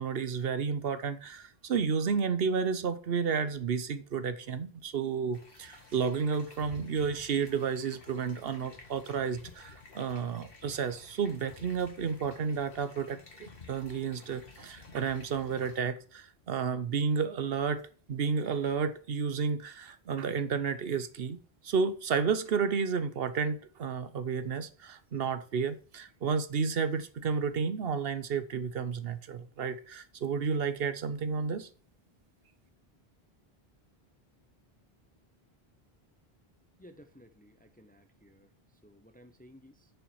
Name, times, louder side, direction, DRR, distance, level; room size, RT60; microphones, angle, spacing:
voice 1, 0.0-17.8 18.1-31.7, right 6 dB, 70° right, 1.0 m, -31 dB
sound 1, 5.3-15.8, left 3 dB, 60° left, 1.8 m, -52 dB
voice 2, 36.8-38.5 38.8-39.9, equal, 10° left, 0.6 m, -56 dB
7.0 x 5.6 x 7.2 m
omnidirectional pair, 1.0 m